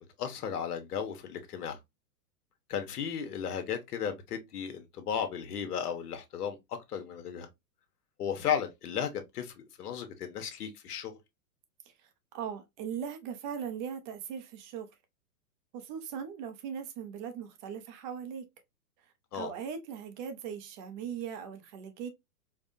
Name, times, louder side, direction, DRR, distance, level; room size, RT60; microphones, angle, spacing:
voice 1, 0.0-1.8 2.7-7.5 8.2-11.2 19.3-19.5, left 8 dB, 70° left, 1.1 m, -35 dB
voice 2, 12.3-14.9 15.7-18.5 19.3-22.1, right 7 dB, 30° right, 0.6 m, -39 dB
4.5 x 2.2 x 2.6 m
hypercardioid pair, 135°, 48 cm